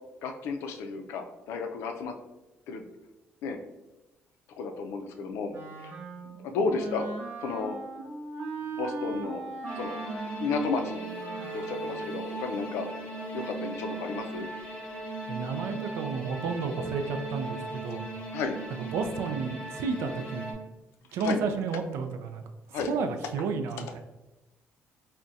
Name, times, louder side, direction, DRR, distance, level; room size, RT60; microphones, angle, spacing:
voice 1, 0.2-2.1 2.7-2.9 3.4-3.6 4.6-5.5 5.8-5.9 6.4-7.1 7.4-7.8 8.7-9.4 9.8-10.0 10.4-11.0 11.5-12.9 13.3-14.5 18.3-18.6 21.2-21.4 22.7-22.9, left 4 dB, 90° left, 5 dB, 0.4 m, -32 dB
Wind instrument woodwind instrument, 5.5-12.1, right 3 dB, 50° right, 0.6 m, -39 dB
sound 1, 9.7-20.5, right 2 dB, 25° left, 0.7 m, -37 dB
voice 2, 15.3-18.1 18.7-20.5 21.1-22.4 22.8-24.0, right 5 dB, 85° right, 7 dB, 0.3 m, -32 dB
2.4 x 2.1 x 3.9 m, 1.0 s
cardioid pair, 150°, 4 cm